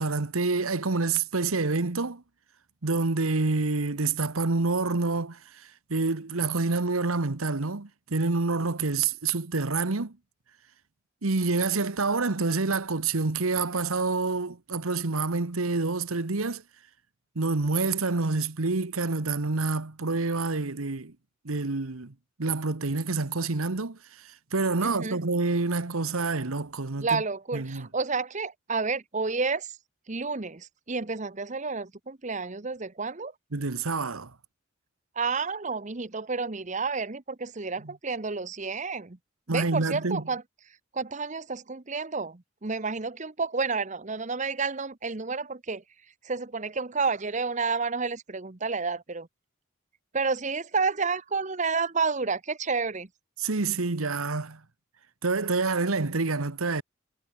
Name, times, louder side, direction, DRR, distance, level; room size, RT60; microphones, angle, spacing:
voice 1, 0.0-2.2 2.8-10.1 11.2-16.6 17.3-21.1 21.4-22.1 22.4-27.2 27.5-27.9 33.5-34.3 37.8-37.9 39.5-40.2 53.4-54.6 55.2-56.8, right 3 dB, 90° right, 1.3 m, -27 dB
voice 2, 24.8-25.2 27.0-29.7 30.1-33.3 35.2-39.2 39.5-40.4 40.9-45.8 46.2-49.3 50.1-53.1, right 4 dB, 35° right, 1.0 m, -30 dB
head